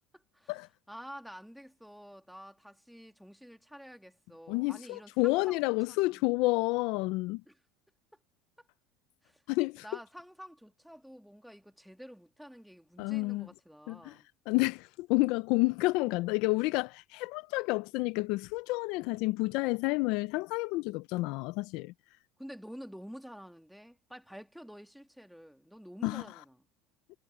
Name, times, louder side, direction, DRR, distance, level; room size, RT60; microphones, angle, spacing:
voice 1, 0.1-0.5 0.9-5.6 5.9-6.2 7.5-7.6 8.1-8.2 8.6-8.7 9.2-9.4 9.8-14.3 22.4-26.7, equal, ahead, 1.9 m, -49 dB
voice 2, 4.5-7.4 9.5-9.8 13.0-13.5 13.9-14.2 14.5-21.9 26.0-26.2, left 22 dB, 65° left, 0.5 m, -30 dB
cardioid pair, 140°, 0 cm